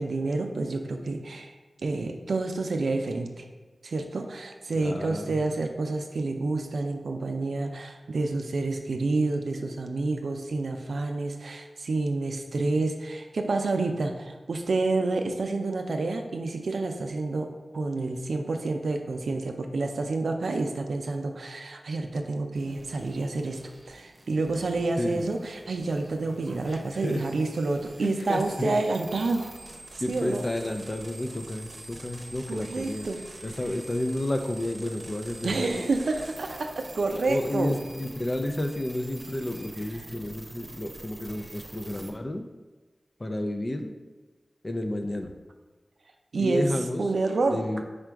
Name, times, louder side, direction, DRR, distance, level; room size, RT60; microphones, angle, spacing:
voice 1, 0.0-1.5 1.8-3.4 3.8-17.5 17.7-29.5 29.9-30.4 32.5-33.2 35.4-37.7 46.3-46.7 47.0-47.6, right 3 dB, 85° right, 5 dB, 0.4 m, -29 dB
voice 2, 4.7-5.4 25.0-25.3 26.7-27.2 28.0-28.7 30.0-33.1 33.4-35.9 37.3-42.4 43.2-43.9 44.6-45.3 46.4-47.1 47.5-47.8, left 1 dB, 40° left, 6 dB, 0.4 m, -31 dB
sound 1, 22.5-42.1, right 2 dB, 50° right, 0.7 m, -46 dB
5.0 x 2.3 x 4.5 m, 1.3 s
cardioid pair, 40°, 0 cm